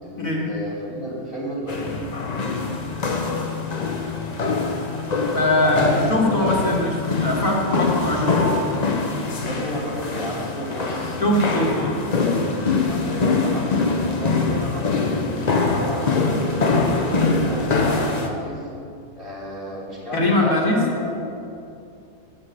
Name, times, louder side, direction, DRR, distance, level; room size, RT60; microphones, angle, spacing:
voice 1, 0.0-2.0 5.6-6.5 9.4-12.4 12.9-15.1 15.7-16.3 16.6-18.7 19.1-21.2, equal, 35° right, -6 dB, 3.1 m, -32 dB
sound 1, 1.7-18.3, left 3 dB, 35° left, 0.7 m, -23 dB
voice 2, 5.3-8.4 11.2-12.0 20.1-20.8, left 1 dB, 60° left, -2 dB, 1.9 m, -21 dB
8.0 x 7.6 x 8.8 m, 2.5 s
omnidirectional pair, 1.7 m